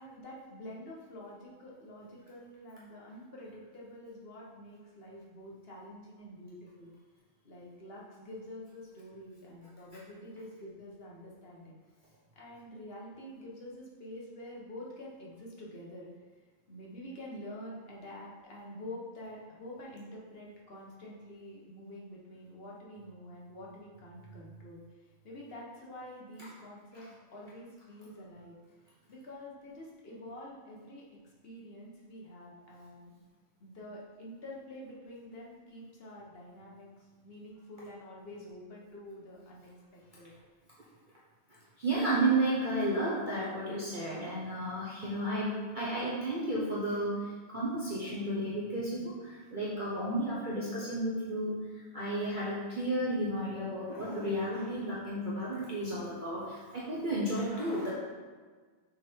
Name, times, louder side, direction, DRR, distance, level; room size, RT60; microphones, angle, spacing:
voice 1, 0.0-6.9 7.4-11.8 12.3-16.1 16.4-28.6 29.1-33.1 33.6-40.5, left 1 dB, 45° left, -4 dB, 1.4 m, -47 dB
voice 2, 41.5-57.9, right 1 dB, 40° right, -7 dB, 1.0 m, -32 dB
6.3 x 3.9 x 4.4 m, 1.5 s
omnidirectional pair, 1.5 m